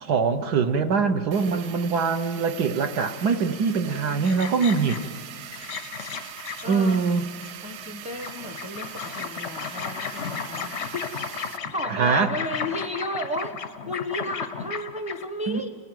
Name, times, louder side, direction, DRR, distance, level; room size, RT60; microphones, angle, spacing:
voice 1, 0.0-5.0 6.7-7.3 11.9-12.3 15.5-15.6, right 5 dB, 60° right, 7 dB, 1.3 m, -23 dB
sound 1, 1.3-11.6, right 9 dB, 90° right, 1.7 m, -41 dB
voice 2, 3.8-4.5 6.6-7.1 7.6-13.5 13.9-15.8, left 1 dB, 5° right, 5 dB, 0.9 m, -34 dB
sound 2, 4.2-5.2 5.5-7.9 8.2-15.2, left 6 dB, 55° left, 0.7 m, -35 dB
29.5 x 17.5 x 9.2 m, 2.1 s
omnidirectional pair, 2.2 m